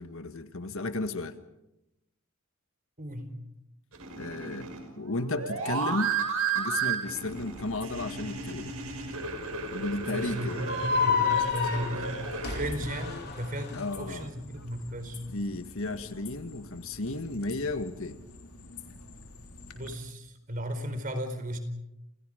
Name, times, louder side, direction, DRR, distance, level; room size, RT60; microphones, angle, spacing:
voice 1, 0.0-1.4 4.2-4.7 5.0-6.1 6.5-8.8 9.7-10.7 13.7-14.3 15.3-18.2, left 2 dB, 65° left, 9 dB, 1.7 m, -33 dB
voice 2, 3.0-3.3 10.1-15.2 19.7-21.6, equal, 40° right, 8 dB, 4.4 m, -35 dB
sound 1, 3.9-13.1, right 5 dB, 80° right, 5.9 m, -34 dB
sound 2, 7.3-19.9, left 2 dB, 90° left, 3.6 m, -48 dB
sound 3, 10.6-13.8, left 5 dB, 50° left, 4.3 m, -29 dB
29.5 x 29.0 x 5.1 m, 0.91 s
head